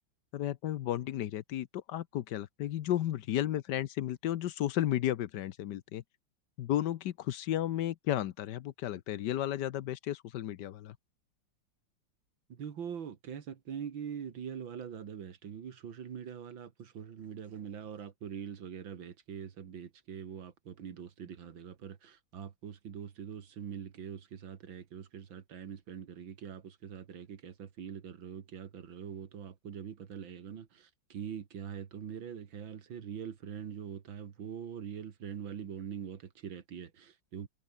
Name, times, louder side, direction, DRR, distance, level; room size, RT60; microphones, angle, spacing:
voice 1, 0.3-6.0 6.6-10.9, left 12 dB, 70° left, 1.3 m, -33 dB
voice 2, 12.5-37.5, right 7 dB, 85° right, 2.5 m, -43 dB
omnidirectional pair, 2.1 m